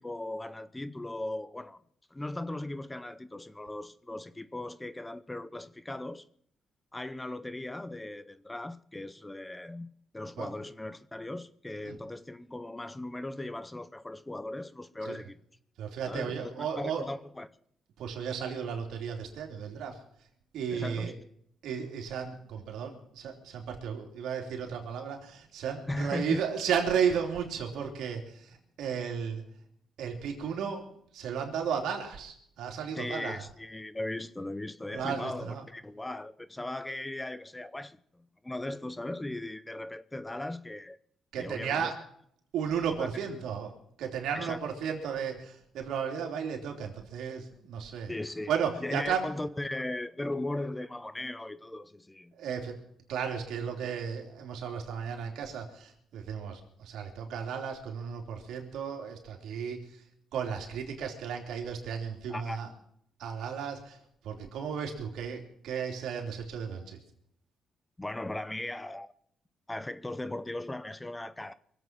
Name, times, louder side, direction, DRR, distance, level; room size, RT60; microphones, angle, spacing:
voice 1, 0.0-1.8 2.1-6.3 6.9-9.9 10.1-15.4 16.0-17.5 20.7-21.2 25.9-26.4 33.0-41.0 41.4-41.9 43.0-43.1 44.3-44.6 48.1-48.5 48.8-52.3 62.3-62.6 68.0-69.1 69.7-71.5, left 1 dB, 15° left, 0.7 m, -38 dB
voice 2, 15.8-17.1 18.0-20.0 20.5-21.1 21.6-29.4 30.0-30.9 31.1-33.4 34.9-35.6 41.3-41.9 42.5-48.1 48.5-49.3 52.3-52.8 53.1-60.1 60.3-62.7 63.2-67.0, right 7 dB, 80° right, 3.2 m, -34 dB
23.5 x 8.2 x 6.1 m
cardioid pair, 90°, 0 cm